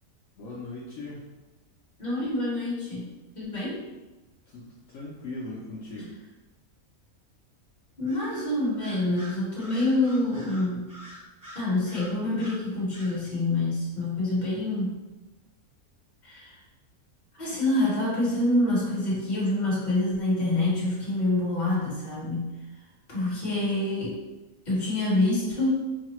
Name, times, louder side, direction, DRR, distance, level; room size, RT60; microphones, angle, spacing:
voice 1, 0.4-1.3 4.5-6.1, left 2 dB, 65° left, -6 dB, 1.0 m, -39 dB
voice 2, 2.0-3.8 8.0-10.9 11.5-15.0 16.2-16.6 17.4-22.6 23.1-24.2 24.6-25.9, left 2 dB, 30° left, -7 dB, 1.5 m, -26 dB
Bird vocalization bird call bird song, 8.1-8.5 8.8-12.6 12.9-13.2, equal, 25° right, 0.4 m, -46 dB
4.8 x 2.3 x 3.0 m, 1.1 s
omnidirectional pair, 1.6 m